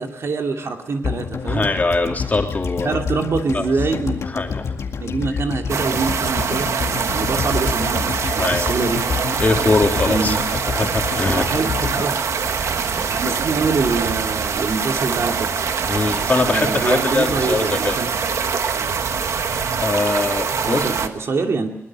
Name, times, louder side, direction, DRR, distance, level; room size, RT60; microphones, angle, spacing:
voice 1, 0.0-1.7 2.8-4.2 5.0-6.7 7.1-9.0 10.1-10.4 11.4-12.2 13.1-15.5 16.4-18.2 18.7-18.9 20.6-21.7, right 4 dB, 70° right, 3 dB, 2.7 m, -24 dB
sound 1, 1.0-13.2 13.5-13.6, left 6 dB, 80° left, 2.1 m, -28 dB
voice 2, 1.5-3.0 3.5-3.6 4.3-4.6 8.4-8.8 9.4-11.5 13.2-13.3 15.9-18.0 19.8-20.9, left 3 dB, 35° left, 2 dB, 3.1 m, -22 dB
sound 2, 5.7-21.1, right 6 dB, 85° right, 1.3 m, -23 dB
22.5 x 19.5 x 7.5 m, 0.90 s
wide cardioid pair, 110°, 5 cm